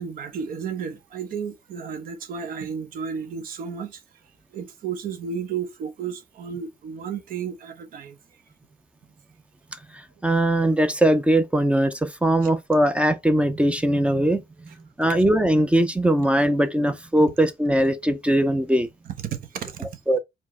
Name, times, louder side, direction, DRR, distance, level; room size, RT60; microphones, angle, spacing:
voice 1, 0.0-4.0 4.5-8.2 12.4-12.5 19.2-20.0, right 7 dB, 60° right, 0.8 m, -33 dB
voice 2, 9.9-14.4 15.0-18.9 20.1-20.2, right 1 dB, 5° right, 0.5 m, -20 dB
4.5 x 2.1 x 4.1 m
cardioid pair, 110°, 17 cm